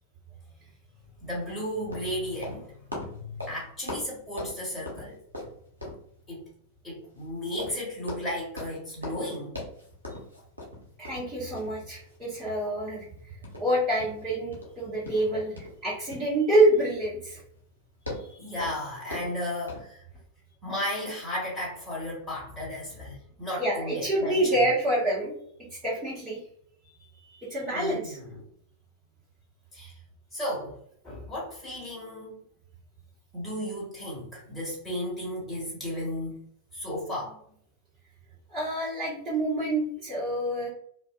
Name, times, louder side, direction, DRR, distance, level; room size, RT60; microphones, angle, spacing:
sound 1, 1.0-19.8, left 1 dB, 80° right, 0.9 m, -42 dB
voice 1, 1.2-2.7 3.1-5.2 6.3-6.4 6.8-9.6 18.4-20.0 20.6-24.5 27.7-28.3 29.7-29.9 30.3-30.8 31.0-32.4 33.3-36.4 36.7-37.4, left 1 dB, 10° left, -7 dB, 1.5 m, -34 dB
voice 2, 11.0-17.4 18.2-18.4 23.6-25.3 25.8-26.4 27.2-28.2 38.5-40.7, right 1 dB, 20° right, -10 dB, 1.1 m, -27 dB
2.4 x 2.3 x 2.3 m, 0.64 s
figure-of-eight pair, 90°, 0 cm